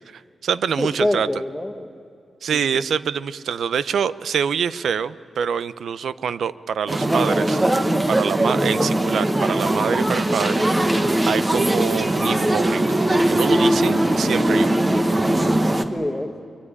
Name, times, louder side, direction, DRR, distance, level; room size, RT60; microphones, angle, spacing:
voice 1, 0.1-1.3 2.4-7.6 8.1-10.9 11.3-12.8 13.1-14.8, right 7 dB, 90° right, 17 dB, 0.7 m, -25 dB
voice 2, 0.8-1.9 2.5-2.8 15.9-16.4, left 1 dB, 5° left, 7 dB, 1.5 m, -26 dB
sound 1, 6.9-15.8, right 1 dB, 20° right, 1.4 m, -20 dB
23.5 x 23.5 x 9.9 m, 2.5 s
wide cardioid pair, 150°, 0 cm